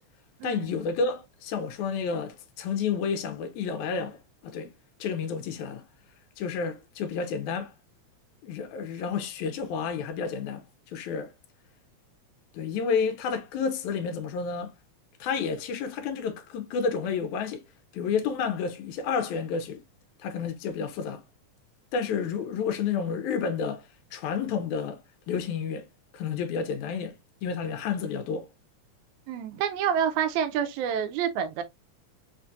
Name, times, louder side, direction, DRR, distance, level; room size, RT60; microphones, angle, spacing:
voice 1, 0.4-4.7 5.0-5.8 6.4-7.7 8.4-11.3 12.5-14.7 15.2-17.6 17.9-19.8 20.2-21.2 21.9-23.8 24.1-25.0 25.3-25.9 26.1-27.2 27.4-28.5, left 6 dB, 80° left, 2.1 m, -30 dB
voice 2, 29.3-31.6, right 8 dB, 85° right, 1.9 m, -28 dB
5.0 x 2.4 x 2.6 m
omnidirectional pair, 3.4 m